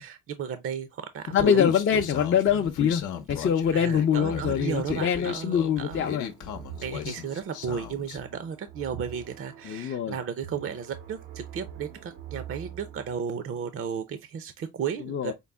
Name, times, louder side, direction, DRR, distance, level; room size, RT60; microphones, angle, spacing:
voice 1, 0.0-1.6 3.7-6.1 6.8-15.3, right 7 dB, 45° right, 0.6 m, -34 dB
voice 2, 1.3-3.0 3.3-6.3 7.1-7.2 9.6-10.2 15.1-15.3, left 8 dB, 40° left, 0.5 m, -24 dB
Human voice, 1.4-8.2, left 8 dB, 80° left, 0.8 m, -35 dB
sound 1, 3.7-13.2, right 10 dB, 80° right, 0.9 m, -45 dB
5.3 x 2.0 x 3.4 m
cardioid pair, 90°, 30 cm